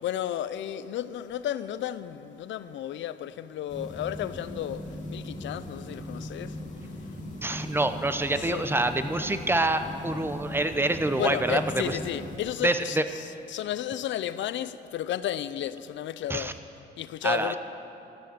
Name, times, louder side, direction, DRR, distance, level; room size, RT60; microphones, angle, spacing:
voice 1, 0.0-6.6 7.0-7.2 8.4-8.6 11.1-16.6 17.0-17.6, left 11 dB, 70° left, 0.5 m, -33 dB
sound 1, 3.7-12.4, left 1 dB, 40° left, 2.6 m, -39 dB
voice 2, 7.4-12.0 12.6-13.0 16.3-16.5 17.2-17.5, right 2 dB, 10° right, 0.7 m, -26 dB
13.0 x 6.6 x 9.2 m
cardioid pair, 90°, 20 cm